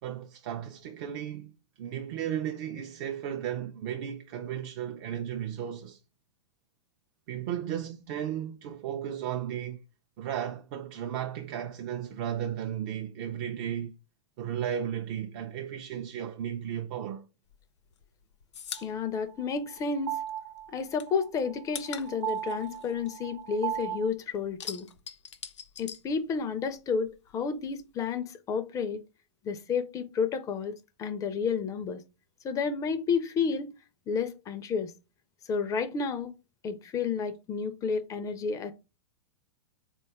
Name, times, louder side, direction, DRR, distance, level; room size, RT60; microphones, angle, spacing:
voice 1, 0.0-6.0 7.3-9.8 10.2-13.9 14.4-17.2, right 10 dB, 45° right, 0.4 m, -35 dB
sound 1, 17.5-20.3 20.6-23.9 24.2-26.8 27.1-28.2, left 8 dB, 75° left, 0.5 m, -43 dB
voice 2, 18.8-20.2 20.7-24.9 25.8-29.0 29.4-32.0 32.4-33.7 34.1-34.9 35.5-36.3 36.6-38.7, left 5 dB, 20° left, 0.4 m, -31 dB
sound 2, 18.8-24.1, right 12 dB, 65° right, 0.9 m, -37 dB
3.9 x 2.3 x 3.4 m
figure-of-eight pair, 105°, 15 cm